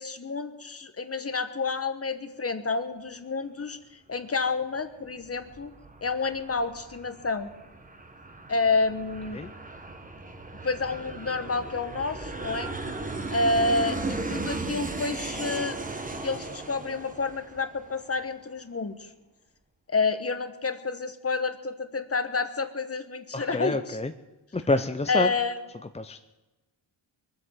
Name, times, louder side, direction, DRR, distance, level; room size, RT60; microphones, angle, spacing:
voice 1, 0.0-3.8 4.1-5.7 6.0-7.5 8.5-9.4 10.6-12.7 13.3-15.8 16.2-19.1 19.9-23.8 25.1-25.6, left 3 dB, 30° left, 10 dB, 1.2 m, -29 dB
Aircraft, 5.0-18.2, right 2 dB, 20° right, 1.3 m, -36 dB
voice 2, 23.3-24.1 24.5-25.3 25.9-26.2, left 2 dB, 15° left, 8 dB, 0.5 m, -27 dB
22.5 x 8.1 x 7.5 m, 1.1 s
wide cardioid pair, 125°, 45 cm